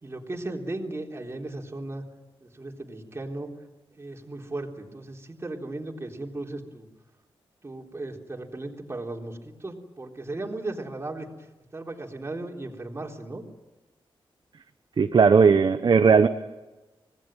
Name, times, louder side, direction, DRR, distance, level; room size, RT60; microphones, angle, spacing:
voice 1, 0.0-2.0 2.4-3.5 4.0-6.9 7.6-11.3 11.7-13.4, right 2 dB, 25° right, 0 dB, 3.9 m, -36 dB
voice 2, 15.0-16.3, right 5 dB, 50° right, 7 dB, 1.1 m, -17 dB
25.5 x 19.5 x 9.2 m, 1.1 s
wide cardioid pair, 135°, 9 cm